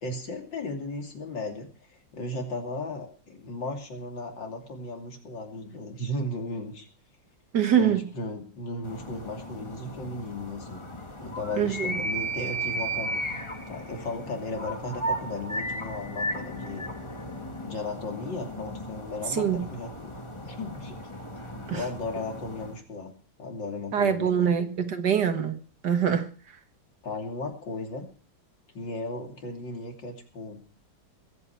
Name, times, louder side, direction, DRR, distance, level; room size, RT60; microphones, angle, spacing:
voice 1, 0.0-6.9 7.7-10.9 11.2-13.2 13.7-16.9 17.6-21.0 21.7-23.1 23.4-24.5 27.0-28.1 28.7-30.6, left 2 dB, 70° left, 3.6 m, -36 dB
voice 2, 7.5-8.0 11.6-12.0 19.3-19.6 21.7-21.9 23.9-25.6 25.8-26.3, right 8 dB, 60° right, 2.1 m, -24 dB
sound 1, 8.8-22.8, right 1 dB, 15° left, 1.8 m, -35 dB
21.5 x 8.8 x 4.7 m
omnidirectional pair, 2.0 m